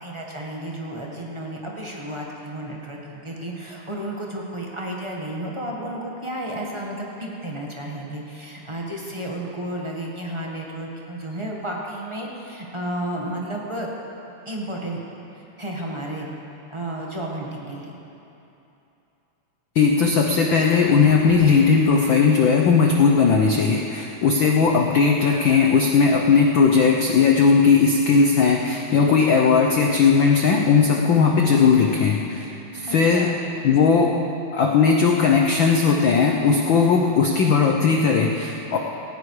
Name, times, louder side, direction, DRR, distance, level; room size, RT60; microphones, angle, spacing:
voice 1, 0.0-13.9 14.4-15.0 15.3-16.3 16.7-18.0 24.7-24.8 32.9-33.4, right 1 dB, 15° right, -2 dB, 0.9 m, -32 dB
voice 2, 19.7-33.3 33.6-34.2 34.5-38.8, left 5 dB, 80° left, 1 dB, 1.1 m, -18 dB
18.0 x 16.0 x 4.9 m, 2.9 s
omnidirectional pair, 3.5 m